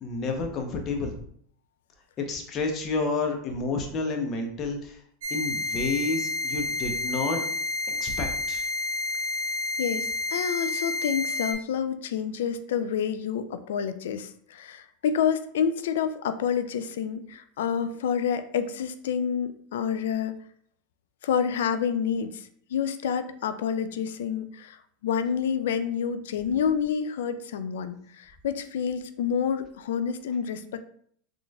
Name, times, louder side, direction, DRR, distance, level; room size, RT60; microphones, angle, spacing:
voice 1, 0.0-1.1 2.2-5.0 5.3-7.5 7.9-8.6, left 3 dB, 40° left, 3 dB, 0.8 m, -30 dB
sound 1, 5.2-11.5, left 2 dB, 75° right, 0.7 m, -30 dB
voice 2, 9.8-20.4 21.2-30.8, left 7 dB, 80° left, 11 dB, 0.3 m, -28 dB
4.2 x 3.1 x 2.3 m, 0.62 s
hypercardioid pair, 105°, 0 cm